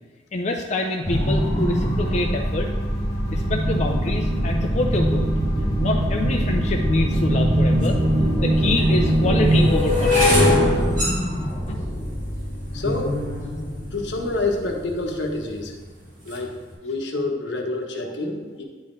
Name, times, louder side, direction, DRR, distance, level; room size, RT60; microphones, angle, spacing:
voice 1, 0.3-2.7 3.3-5.3 5.8-8.0 8.4-10.5 11.7-11.8, left 2 dB, 40° left, 1 dB, 0.5 m, -26 dB
sound 1, 1.0-15.5, equal, 20° left, 1.2 m, -26 dB
sound 2, 3.3-9.7, right 1 dB, 65° right, 1.2 m, -22 dB
sound 3, 7.8-7.9 8.7-14.8 15.5-16.5, left 2 dB, 50° right, 2.1 m, -23 dB
voice 2, 12.7-15.8 16.2-16.5 16.8-18.6, left 2 dB, 80° left, 2 dB, 1.0 m, -28 dB
9.6 x 4.2 x 3.7 m, 1.4 s
head